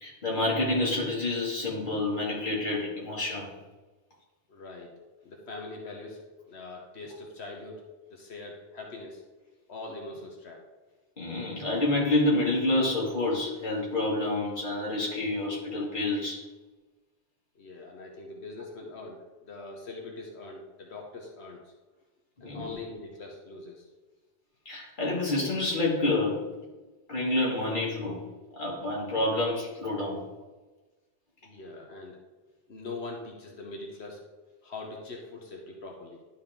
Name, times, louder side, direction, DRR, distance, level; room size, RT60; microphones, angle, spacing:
voice 1, 0.0-3.5 11.2-16.5 22.4-22.7 24.7-26.5 27.1-28.2 28.5-30.2, left 2 dB, 45° left, -5 dB, 2.2 m, -28 dB
voice 2, 4.5-4.9 5.2-6.2 6.5-7.8 8.1-9.2 9.7-10.6 17.5-21.6 22.4-23.9 31.4-32.2 32.7-34.2 34.6-36.2, left 3 dB, 70° left, 0 dB, 1.3 m, -42 dB
11.5 x 4.2 x 3.6 m, 1.2 s
omnidirectional pair, 1.1 m